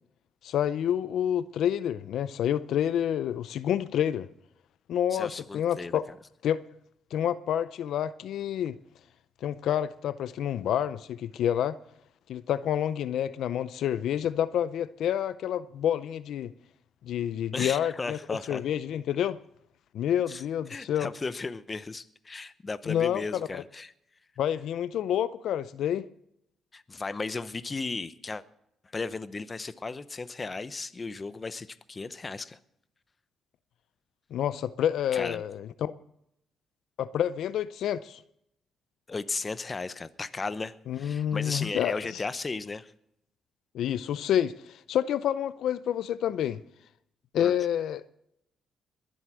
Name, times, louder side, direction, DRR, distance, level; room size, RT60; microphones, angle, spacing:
voice 1, 0.4-4.3 4.9-6.0 6.4-6.6 7.1-8.8 9.4-11.8 12.3-16.5 17.0-18.2 18.5-19.4 19.9-21.1 22.9-23.6 24.4-26.1 34.3-35.9 37.0-38.2 40.9-41.9 43.7-46.6 47.3-48.1, left 10 dB, 75° left, 0.5 m, -28 dB
voice 2, 5.1-6.0 17.5-18.6 20.3-20.4 20.7-23.9 26.7-28.4 28.9-32.6 35.1-35.4 39.1-42.9 47.3-47.6, left 3 dB, 30° left, 0.9 m, -35 dB
21.5 x 7.9 x 6.2 m
cardioid pair, 90°, 0 cm